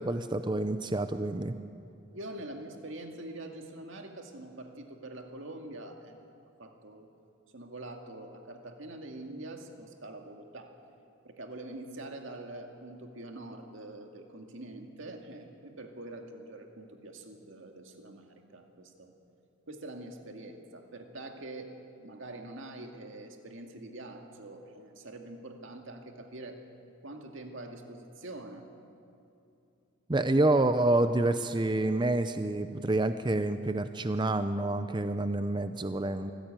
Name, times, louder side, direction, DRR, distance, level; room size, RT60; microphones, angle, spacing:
voice 1, 0.0-1.5 30.1-36.3, right 2 dB, 20° right, 10 dB, 0.6 m, -28 dB
voice 2, 2.1-6.2 6.6-7.1 7.5-10.8 11.2-19.1 19.7-21.7 22.0-26.6 27.0-28.7, right 2 dB, 65° right, 4 dB, 2.2 m, -44 dB
25.0 x 15.5 x 9.0 m, 2.6 s
head